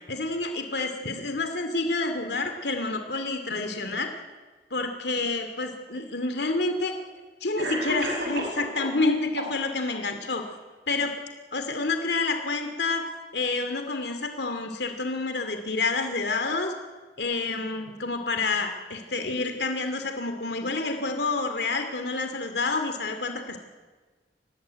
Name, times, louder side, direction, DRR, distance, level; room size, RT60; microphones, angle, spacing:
voice 1, 0.1-4.1 4.7-6.9 7.4-10.5 10.9-11.1 11.5-13.0 13.3-16.7 17.2-23.6, left 3 dB, 65° left, 6 dB, 2.6 m, -28 dB
Cough, 5.9-6.0 7.0-7.1 7.6-9.0 9.4-10.0, right 1 dB, 70° right, 7.3 m, -32 dB
25.0 x 18.5 x 9.4 m, 1.4 s
head